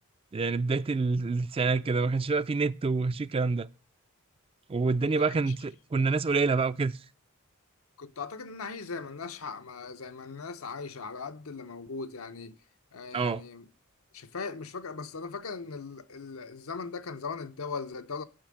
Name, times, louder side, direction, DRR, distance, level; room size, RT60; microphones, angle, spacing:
voice 1, 0.3-3.7 4.7-7.0 13.1-13.4, right 4 dB, 25° right, 0.4 m, -27 dB
voice 2, 5.0-5.5 5.9-6.4 8.0-12.6 12.9-13.6 14.1-18.2, left 4 dB, 85° left, 0.8 m, -39 dB
8.8 x 6.0 x 6.3 m
head